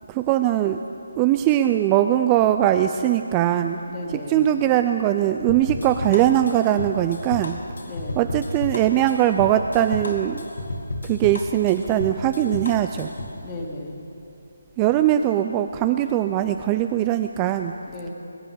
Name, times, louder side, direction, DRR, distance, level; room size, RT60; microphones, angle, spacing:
voice 1, 0.1-0.8 1.2-3.8 4.1-7.6 8.2-10.4 11.0-13.1 14.8-17.7, right 12 dB, 20° right, 8 dB, 0.3 m, -21 dB
voice 2, 3.9-4.5 7.9-8.2 13.3-14.1 17.9-18.1, left 2 dB, 20° left, 0 dB, 2.0 m, -35 dB
sound 1, 5.5-13.4, left 1 dB, 70° left, 1.8 m, -32 dB
20.5 x 9.0 x 7.6 m, 2.8 s
figure-of-eight pair, 155°, 0 cm